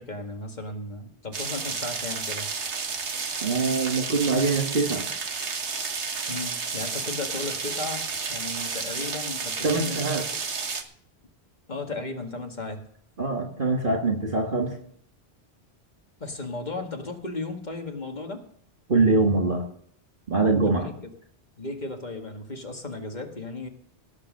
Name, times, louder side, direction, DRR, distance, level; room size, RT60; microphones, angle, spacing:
voice 1, 0.0-2.5 6.3-10.1 11.7-12.8 16.2-18.4 20.7-21.1 21.6-23.7, left 2 dB, 40° left, 4 dB, 2.0 m, -35 dB
sound 1, 1.3-10.8, right 5 dB, 85° right, 1.6 m, -31 dB
voice 2, 3.4-5.1 9.6-10.2 13.2-14.8 18.9-19.6 20.3-20.9, right 3 dB, 50° right, 2 dB, 1.8 m, -23 dB
18.0 x 7.4 x 6.5 m, 0.65 s
omnidirectional pair, 1.1 m